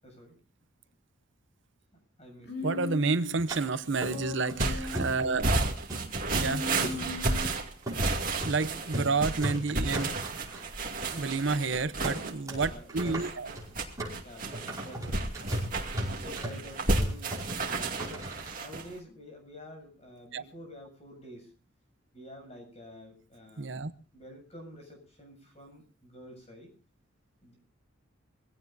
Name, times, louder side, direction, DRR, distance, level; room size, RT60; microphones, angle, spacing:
voice 1, 0.0-0.4 1.9-2.9 7.9-9.1 11.1-13.6 14.2-15.3 16.1-18.3 18.6-21.5 22.1-23.9 24.1-26.7 27.4-27.6, equal, 30° left, 3 dB, 7.3 m, -49 dB
Human voice, 2.4-3.4 3.9-5.5 6.4-7.6, left 2 dB, 60° left, 4.5 m, -38 dB
voice 2, 2.6-5.8 6.3-7.0 8.4-10.1 11.1-13.5 20.3-20.4 23.6-23.9, right 4 dB, 65° right, 13 dB, 0.7 m, -30 dB
sound 1, 3.5-3.6 4.0-4.6 4.9-5.6 5.9-7.0 7.3-7.5 7.9-8.0 8.4-8.6 8.8-9.1 9.4-10.6 11.1-11.2 11.4-11.6 12.0-12.6 12.9-18.5, right 1 dB, 15° right, 5.6 m, -36 dB
sound 2, 4.6-18.9, right 2 dB, 40° right, 2.3 m, -32 dB
23.5 x 16.5 x 2.6 m, 0.35 s
head